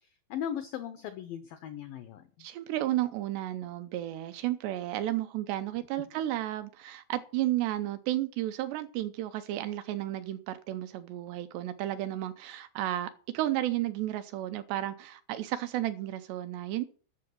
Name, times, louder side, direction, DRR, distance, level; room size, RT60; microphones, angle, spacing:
voice 1, 0.0-2.5, left 9 dB, 85° left, 10 dB, 2.0 m, -38 dB
voice 2, 2.4-16.8, right 14 dB, 80° right, 10 dB, 2.6 m, -33 dB
11.5 x 6.7 x 7.8 m, 0.42 s
omnidirectional pair, 5.3 m